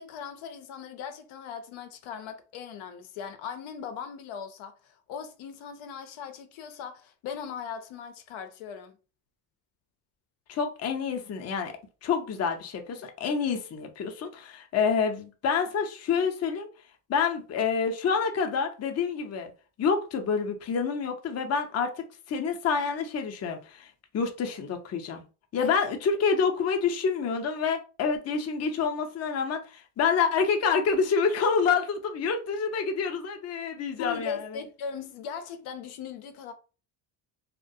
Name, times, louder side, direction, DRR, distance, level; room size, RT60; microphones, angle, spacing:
voice 1, 0.0-9.0 25.6-25.8 34.0-36.5, left 7 dB, 75° left, 0.6 m, -39 dB
voice 2, 10.5-11.7 12.0-16.7 17.1-19.5 19.8-25.2 25.5-34.4, left 5 dB, 35° left, 0.5 m, -27 dB
2.2 x 2.1 x 2.6 m
cardioid pair, 90°, 49 cm